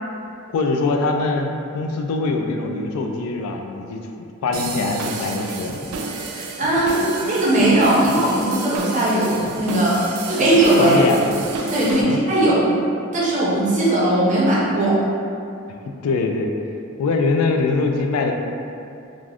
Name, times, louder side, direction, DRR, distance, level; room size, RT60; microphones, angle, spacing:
voice 1, 0.5-4.0 4.4-5.7 10.8-11.2 12.0-12.2 16.0-16.5 17.0-18.3, left 3 dB, 85° left, 4 dB, 0.3 m, -22 dB
sound 1, 4.5-12.0, right 3 dB, 85° right, 0.3 m, -31 dB
voice 2, 6.3-11.0 11.7-12.7 13.1-15.0, right 1 dB, 35° right, -6 dB, 0.5 m, -18 dB
2.5 x 2.4 x 3.3 m, 2.6 s
head